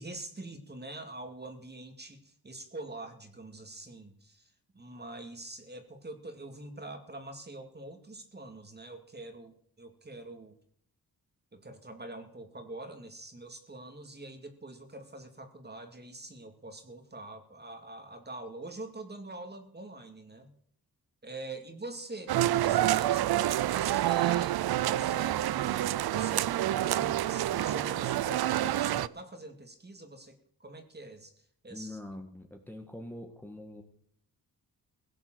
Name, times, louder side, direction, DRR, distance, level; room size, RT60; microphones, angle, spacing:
voice 1, 0.0-10.6 11.5-20.5 21.2-24.6 24.9-31.3 31.6-32.0, right 2 dB, 25° right, 6 dB, 2.5 m, -45 dB
sound 1, 22.3-29.1, right 13 dB, 80° right, 0.5 m, -28 dB
voice 2, 31.7-33.8, left 1 dB, 5° left, 4 dB, 1.8 m, -44 dB
17.5 x 7.9 x 7.9 m, 0.64 s
cardioid pair, 100°, 37 cm